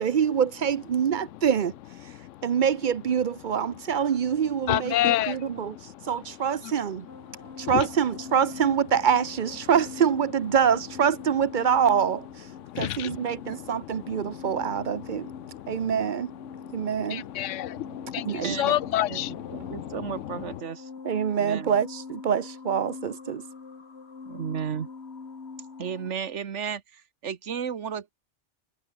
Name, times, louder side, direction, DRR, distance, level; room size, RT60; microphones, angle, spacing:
voice 1, 0.0-1.7 2.4-5.8 6.0-7.1 7.6-12.5 12.8-15.3 15.7-16.3 16.7-17.2 18.2-18.8 21.0-23.4, right 7 dB, 50° right, 0.7 m, -25 dB
voice 2, 2.1-2.5 4.7-6.1 6.6-6.7 7.3-7.9 12.6-16.1 16.5-20.6, left 13 dB, 85° left, 0.9 m, -31 dB
sound 1, 7.1-26.1, left 4 dB, 60° left, 2.2 m, -43 dB
voice 3, 19.5-20.9 21.3-21.8 24.3-24.9 25.8-28.2, right 7 dB, 75° right, 1.5 m, -34 dB
omnidirectional pair, 1.2 m